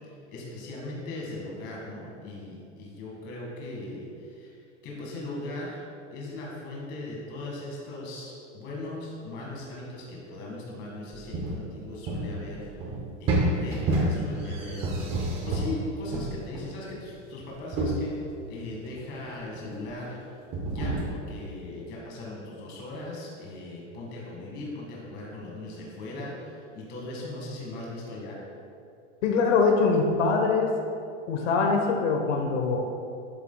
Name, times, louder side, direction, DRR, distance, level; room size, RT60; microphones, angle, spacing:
voice 1, 0.3-5.8 6.1-12.7 13.2-15.1 15.4-18.1 18.5-20.2 20.7-28.4, left 2 dB, 30° left, -3 dB, 1.9 m, -39 dB
sound 1, 11.1-11.6 12.1-15.8 16.1-17.0 17.4-18.1 18.9-19.1 19.6-19.9 20.5-21.1, right 2 dB, 15° right, 0.6 m, -29 dB
voice 2, 29.2-30.7 31.3-32.9, left 4 dB, 90° left, 2 dB, 1.2 m, -23 dB
12.0 x 7.3 x 2.3 m, 2.5 s
supercardioid pair, 175°, 36 cm